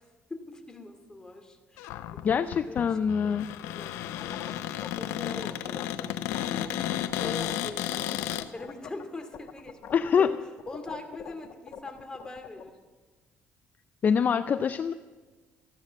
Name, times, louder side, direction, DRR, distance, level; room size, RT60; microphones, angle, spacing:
voice 1, 0.0-4.5 5.0-6.6 7.2-9.8 10.2-10.4 10.7-12.8, left 2 dB, 15° left, 4 dB, 2.3 m, -43 dB
Cupboard open or close, 1.8-8.5, left 12 dB, 90° left, 0.7 m, -33 dB
voice 2, 2.8-3.4 9.9-10.4 14.0-14.9, left 7 dB, 40° left, 11 dB, 0.5 m, -24 dB
sound 1, 4.0-7.7 7.9-9.0 9.3-12.7, left 8 dB, 60° left, 1.2 m, -43 dB
14.0 x 12.5 x 7.5 m, 1.4 s
cardioid pair, 95°, 4 cm